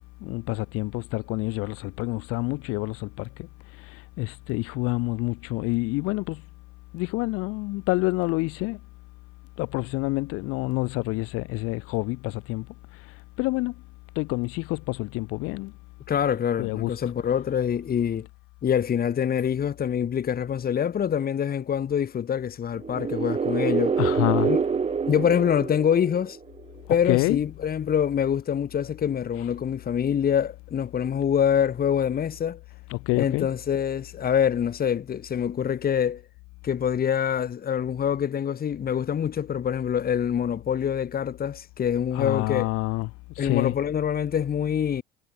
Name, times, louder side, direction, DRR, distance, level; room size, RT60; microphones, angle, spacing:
voice 1, 0.2-3.3 4.2-6.4 6.9-8.8 9.6-12.7 13.4-13.7 14.2-15.7 16.6-17.0 24.0-24.5 26.9-27.5 29.4-29.5 32.9-33.5 42.1-43.1 43.4-43.7, left 23 dB, 50° left, 2.8 m, -27 dB
voice 2, 16.1-18.3 18.6-24.0 24.4-24.6 25.1-26.4 26.9-32.6 33.1-36.2 36.6-42.7 43.4-45.0, left 8 dB, 30° left, 3.9 m, -25 dB
sound 1, 22.8-26.6, right 6 dB, 20° right, 2.4 m, -26 dB
figure-of-eight pair, 65°, 29 cm